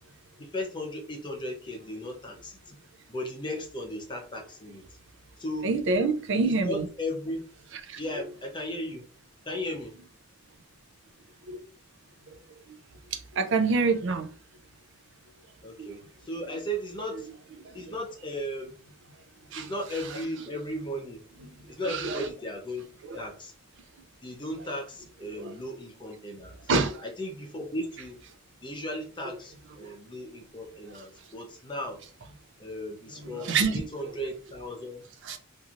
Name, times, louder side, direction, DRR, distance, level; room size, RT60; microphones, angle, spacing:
voice 1, 0.4-2.8 3.1-4.8 5.4-5.7 6.4-7.4 8.0-9.0 9.5-9.9 15.6-17.3 17.7-18.7 19.6-21.2 21.7-22.9 23.1-23.5 24.2-26.6 27.0-28.2 28.6-32.0 32.6-35.0, left 1 dB, 20° left, 0.6 m, -36 dB
voice 2, 5.6-6.8 7.9-8.0 11.5-11.6 13.4-14.3 15.8-15.9 19.5-19.7 21.9-22.2 23.1-23.2 25.4-25.5 26.7-27.0 33.4-33.7 35.3-35.4, right 4 dB, 55° right, 0.5 m, -26 dB
3.0 x 2.6 x 2.5 m
head